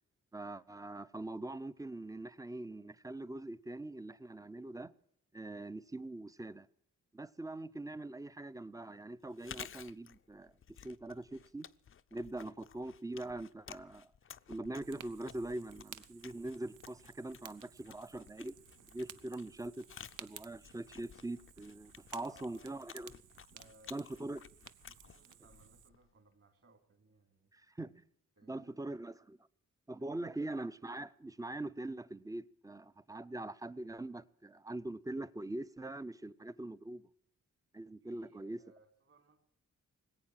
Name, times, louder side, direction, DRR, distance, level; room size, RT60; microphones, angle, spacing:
voice 1, 0.3-4.9 5.3-6.7 7.1-10.5 10.8-11.7 12.1-14.1 14.5-18.6 18.9-19.9 20.2-23.1 23.9-24.4 27.5-27.9 28.4-29.4 29.9-37.0 37.7-38.6, right 2 dB, 10° right, 0.5 m, -43 dB
Chewing mastication, 9.3-26.1, left 8 dB, 45° left, 0.5 m, -55 dB
Fire, 14.8-25.9, right 10 dB, 80° right, 0.7 m, -56 dB
voice 2, 22.2-22.8 23.5-24.0 24.8-27.5 28.4-29.0 30.0-30.3 38.0-39.4, right 3 dB, 50° right, 3.0 m, -64 dB
20.0 x 8.7 x 7.4 m
wide cardioid pair, 105°, 30 cm